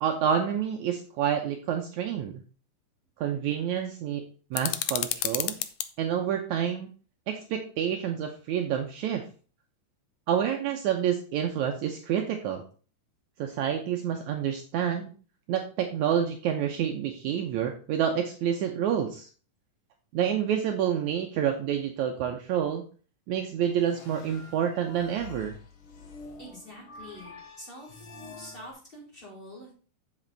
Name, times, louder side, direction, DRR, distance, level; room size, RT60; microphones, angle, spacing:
voice 1, 0.0-2.3 3.2-4.2 4.5-5.6 6.0-6.9 7.3-9.2 10.3-12.6 13.4-15.1 15.5-19.3 20.1-22.8 23.3-25.6, right 9 dB, 75° right, 4 dB, 2.0 m, -28 dB
sound 1, 4.5-5.9, left 13 dB, 75° left, 1.9 m, -30 dB
sound 2, 23.6-28.7, left 4 dB, 55° left, 1.6 m, -47 dB
voice 2, 26.4-28.1 28.3-29.7, equal, 15° left, -5 dB, 4.7 m, -46 dB
7.7 x 7.6 x 3.9 m, 0.39 s
omnidirectional pair, 3.8 m